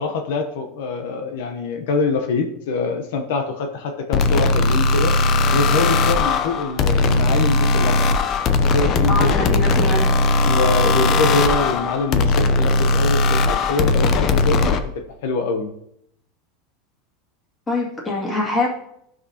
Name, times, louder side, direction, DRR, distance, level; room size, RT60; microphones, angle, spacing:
voice 1, 0.0-5.1 5.5-8.1 8.6-9.9 10.4-14.8 15.2-15.7, left 4 dB, 75° left, 5 dB, 0.9 m, -24 dB
sound 1, 4.1-14.8, left 3 dB, 40° left, 0.6 m, -18 dB
voice 2, 9.1-10.2 17.7-18.7, left 2 dB, 15° left, -3 dB, 2.2 m, -23 dB
12.0 x 6.0 x 2.9 m, 0.76 s
supercardioid pair, 145°, 0 cm